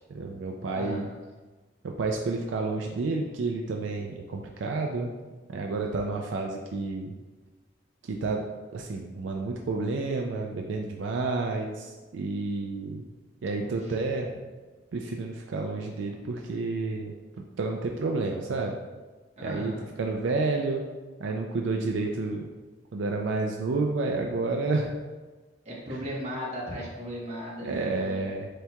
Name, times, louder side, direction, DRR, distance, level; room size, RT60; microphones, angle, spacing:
voice 1, 0.1-1.1 1.8-5.1 5.5-7.1 8.1-8.4 8.7-13.0 13.4-14.3 14.9-17.1 17.6-18.8 19.4-19.7 20.0-20.8 21.2-22.4 22.9-24.9 27.6-28.5, right 3 dB, 80° right, 2 dB, 0.4 m, -30 dB
voice 2, 0.7-1.2 13.5-13.7 19.4-19.9 25.6-28.3, equal, 35° right, -4 dB, 1.2 m, -37 dB
7.7 x 2.9 x 2.3 m, 1.3 s
head